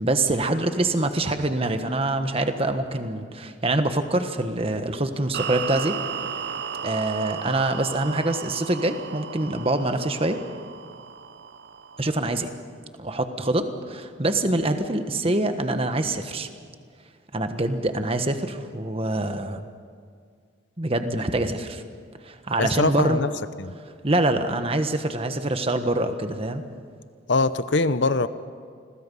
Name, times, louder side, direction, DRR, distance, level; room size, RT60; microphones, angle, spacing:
voice 1, 0.0-6.0 6.8-10.4 12.0-12.5 13.0-16.5 17.3-19.6 20.8-21.8 22.2-23.2 24.0-26.6, right 2 dB, 30° right, 8 dB, 1.3 m, -25 dB
sound 1, 5.3-12.5, right 7 dB, 60° right, 0.6 m, -35 dB
voice 2, 22.6-23.3 23.6-23.7 27.3-28.3, left 3 dB, 65° left, 13 dB, 0.8 m, -22 dB
29.0 x 22.0 x 5.5 m, 2.1 s
head